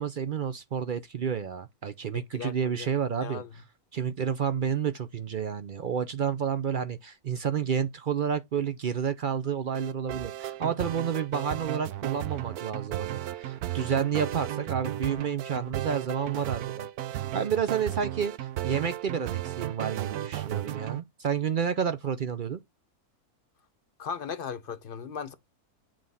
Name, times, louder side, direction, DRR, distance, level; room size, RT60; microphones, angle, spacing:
voice 1, 0.0-3.4 3.9-22.6, right 7 dB, 60° right, 0.5 m, -30 dB
voice 2, 2.1-2.9 3.2-3.5 24.0-25.3, left 6 dB, 45° left, 0.9 m, -37 dB
sound 1, 9.7-21.0, right 13 dB, 85° right, 1.2 m, -34 dB
7.7 x 3.6 x 5.5 m
omnidirectional pair, 1.6 m